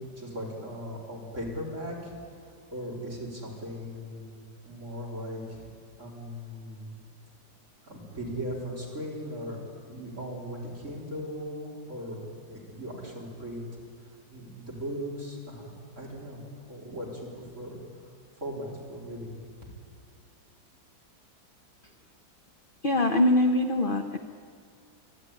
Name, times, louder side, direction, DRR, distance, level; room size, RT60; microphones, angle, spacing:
voice 1, 0.2-2.1 2.7-4.4 4.6-5.6 6.0-6.9 7.8-9.6 9.9-13.8 14.3-16.4 16.7-18.1 18.4-19.4, equal, 40° right, -4 dB, 4.6 m, -38 dB
voice 2, 22.8-24.2, left 1 dB, 55° left, 6 dB, 0.6 m, -23 dB
24.5 x 12.0 x 9.7 m, 2.3 s
omnidirectional pair, 2.1 m